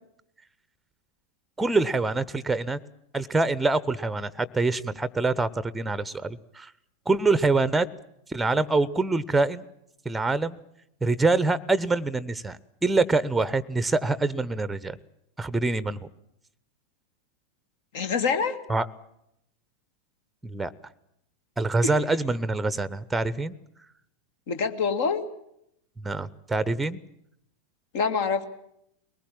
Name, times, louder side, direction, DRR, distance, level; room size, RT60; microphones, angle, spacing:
voice 1, 1.6-2.8 3.1-6.7 7.1-7.9 8.3-9.6 10.0-10.6 11.0-15.0 15.4-16.1 18.7-18.9 20.4-20.7 21.6-23.6 26.0-27.0, right 3 dB, 10° right, 18 dB, 0.9 m, -25 dB
voice 2, 17.9-18.6 21.8-21.9 24.5-25.2 27.9-28.4, left 5 dB, 50° left, 9 dB, 2.0 m, -25 dB
22.5 x 19.5 x 8.8 m, 0.77 s
figure-of-eight pair, 90°, 0 cm